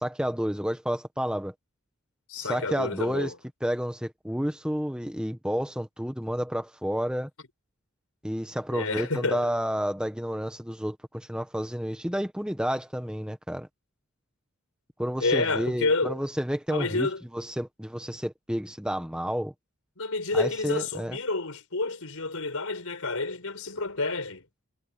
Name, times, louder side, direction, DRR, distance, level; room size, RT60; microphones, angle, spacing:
voice 1, 0.0-1.5 2.4-3.3 3.6-7.3 8.2-13.7 15.0-17.1 17.3-19.5 20.3-21.2, equal, 5° right, 1.3 m, -30 dB
voice 2, 2.3-3.3 8.7-9.5 15.2-16.2 16.7-17.2 20.0-24.4, left 3 dB, 90° left, 5.1 m, -29 dB
head